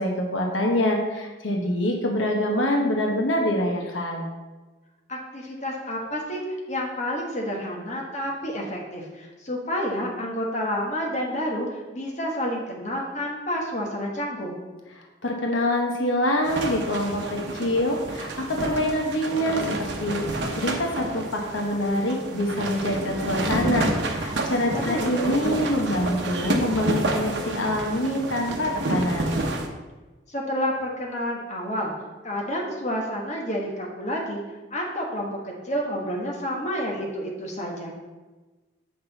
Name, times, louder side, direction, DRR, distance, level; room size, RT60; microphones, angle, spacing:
voice 1, 0.0-4.3 15.0-29.3, left 1 dB, 85° left, 1 dB, 1.1 m, -25 dB
voice 2, 5.1-14.6 24.7-25.4 30.3-31.9 32.2-34.4 34.7-37.9, equal, 40° left, -2 dB, 1.2 m, -29 dB
sound 1, 16.4-29.7, right 2 dB, 65° right, 0.9 m, -29 dB
7.6 x 5.6 x 4.0 m, 1.2 s
head